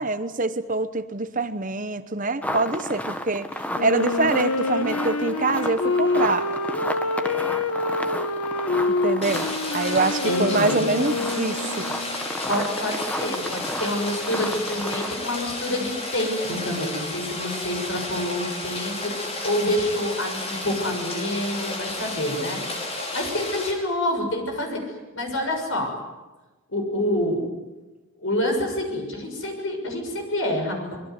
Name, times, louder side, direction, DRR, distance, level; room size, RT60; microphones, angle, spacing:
voice 1, 0.0-3.5 3.8-6.6 9.0-9.5 9.7-11.8, right 3 dB, 35° right, 12 dB, 1.0 m, -25 dB
sound 1, 2.4-15.3, left 1 dB, 5° left, 1.5 m, -33 dB
Wind instrument woodwind instrument, 3.7-12.3, left 3 dB, 85° left, 1.3 m, -26 dB
Rain, 9.2-23.7, left 2 dB, 30° left, 5.1 m, -32 dB
voice 2, 10.2-10.8 12.5-25.9 26.7-27.4 28.2-31.0, left 1 dB, 60° left, 3 dB, 6.7 m, -27 dB
25.0 x 22.5 x 9.6 m, 1.2 s
head